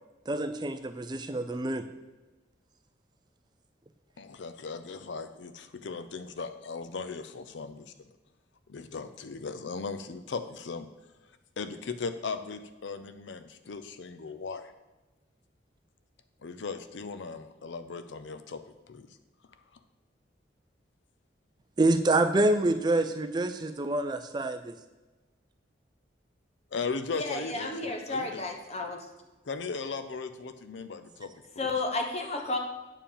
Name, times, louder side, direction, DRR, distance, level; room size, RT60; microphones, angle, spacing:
voice 1, 0.3-1.9 21.8-24.8, right 2 dB, 20° right, 9 dB, 0.4 m, -27 dB
voice 2, 4.2-7.9 8.7-10.9 11.6-14.7 16.4-19.1 26.7-28.4 29.5-31.7, left 4 dB, 75° left, 10 dB, 0.5 m, -38 dB
voice 3, 27.1-29.0 31.6-32.6, left 2 dB, 35° left, 3 dB, 1.0 m, -32 dB
8.9 x 4.5 x 7.2 m, 1.1 s
head